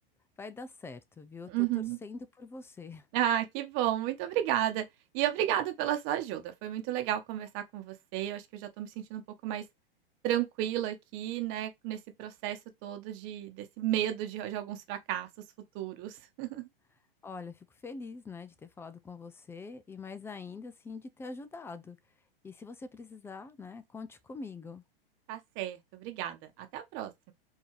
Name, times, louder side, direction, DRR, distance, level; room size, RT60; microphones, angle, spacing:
voice 1, 0.4-3.1 17.2-22.0 22.4-24.8, left 4 dB, 10° left, 0.4 m, -44 dB
voice 2, 1.5-2.0 3.1-4.8 5.1-9.6 10.2-15.3 15.7-16.7 25.3-27.3, right 12 dB, 40° right, 1.0 m, -33 dB
4.6 x 2.7 x 3.1 m
hypercardioid pair, 110°, 29 cm